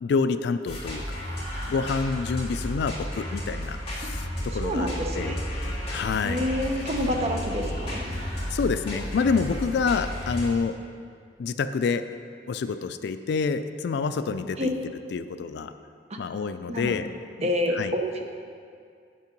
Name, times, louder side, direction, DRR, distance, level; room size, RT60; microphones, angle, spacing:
voice 1, 0.0-1.2 1.7-4.9 5.2-5.4 5.9-6.5 8.5-10.8 11.4-12.0 12.5-14.7 15.1-15.7 16.2-17.1 17.4-17.5 17.8-17.9, left 5 dB, 65° left, 11 dB, 0.3 m, -27 dB
sound 1, 0.7-10.5, equal, 35° left, 2.1 m, -33 dB
voice 2, 4.5-5.4 6.2-8.0 14.6-14.7 16.1-16.2 16.7-17.0 17.4-18.2, left 1 dB, 40° right, 2 dB, 0.8 m, -28 dB
8.2 x 5.5 x 5.2 m, 2.3 s
head